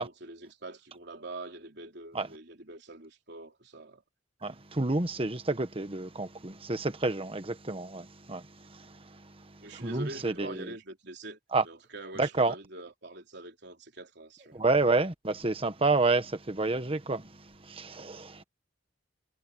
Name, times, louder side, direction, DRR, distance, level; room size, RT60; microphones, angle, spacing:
voice 1, 0.0-4.0 9.6-14.6 18.0-18.2, right 2 dB, 60° right, 3.7 m, -44 dB
voice 2, 4.4-10.7 11.5-11.6 12.2-12.5 14.5-18.4, right 3 dB, 30° right, 1.3 m, -30 dB
head